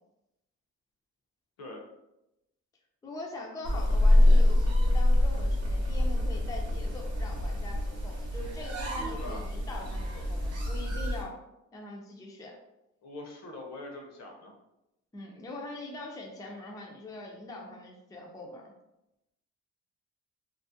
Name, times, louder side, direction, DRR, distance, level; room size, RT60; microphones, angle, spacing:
voice 1, 3.0-11.4 11.7-12.6 15.1-18.7, left 1 dB, 10° left, 0 dB, 0.4 m, -43 dB
sound 1, 3.6-11.2, left 1 dB, 55° right, 0.7 m, -25 dB
voice 2, 9.0-9.4 13.0-14.5, left 1 dB, 60° left, 1 dB, 0.7 m, -42 dB
2.3 x 2.0 x 2.6 m, 0.90 s
cardioid pair, 90°, 30 cm